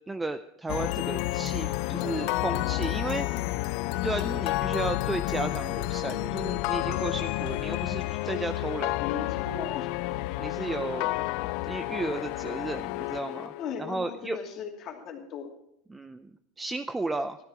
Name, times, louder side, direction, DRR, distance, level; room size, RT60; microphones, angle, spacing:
voice 1, 0.1-3.4 3.9-8.9 10.4-11.1 11.6-13.5 13.8-14.4 15.9-16.3 16.6-17.4, right 2 dB, 10° right, 10 dB, 0.5 m, -33 dB
sound 1, 0.7-14.0, left 18 dB, 65° left, 0.4 m, -30 dB
voice 2, 1.8-2.3 9.0-9.9 13.6-15.5, left 6 dB, 45° left, 2 dB, 2.6 m, -37 dB
13.5 x 12.5 x 4.9 m, 0.77 s
supercardioid pair, 120°, 0 cm